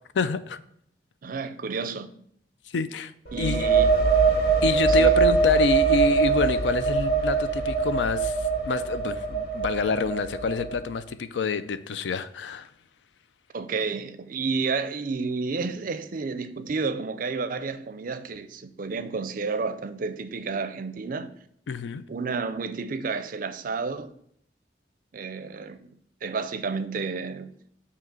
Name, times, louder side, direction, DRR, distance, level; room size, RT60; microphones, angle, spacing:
voice 1, 0.1-0.6 2.7-3.1 3.4-3.7 4.6-12.7 21.7-22.0, left 4 dB, 80° left, 0.4 m, -27 dB
voice 2, 1.2-2.1 3.3-3.9 4.9-5.2 13.5-21.3 22.1-24.1 25.1-25.9 26.2-27.5, right 4 dB, 50° right, 0.4 m, -31 dB
sound 1, 3.3-10.8, right 5 dB, 60° left, 1.3 m, -23 dB
7.3 x 2.9 x 5.9 m
head